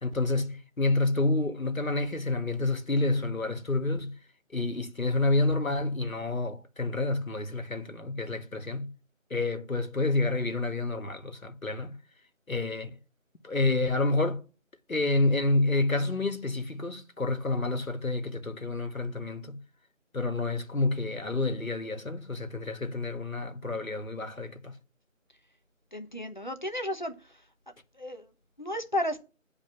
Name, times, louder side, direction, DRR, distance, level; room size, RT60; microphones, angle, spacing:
voice 1, 0.0-4.1 4.5-8.9 9.3-12.0 12.5-12.9 13.4-14.4 14.9-19.6 20.1-24.8, left 2 dB, 85° left, 1.8 m, -29 dB
voice 2, 25.9-27.1 28.0-28.3 28.6-29.2, left 1 dB, 35° left, 1.2 m, -32 dB
9.3 x 5.0 x 7.3 m
figure-of-eight pair, 175°, 40 cm